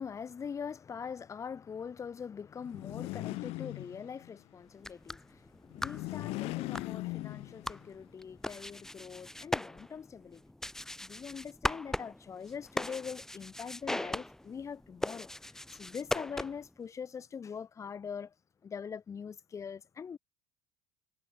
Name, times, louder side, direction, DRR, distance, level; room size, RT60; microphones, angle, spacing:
voice 1, 0.0-10.4 11.0-15.3 15.7-18.3 18.6-20.2, left 6 dB, 30° left, 1.2 m, -43 dB
sound 1, 2.6-4.4 5.7-7.9, left 22 dB, 70° left, 1.1 m, -39 dB
sound 2, 4.7-16.8, left 1 dB, 5° left, 0.5 m, -40 dB
supercardioid pair, 105°, 11 cm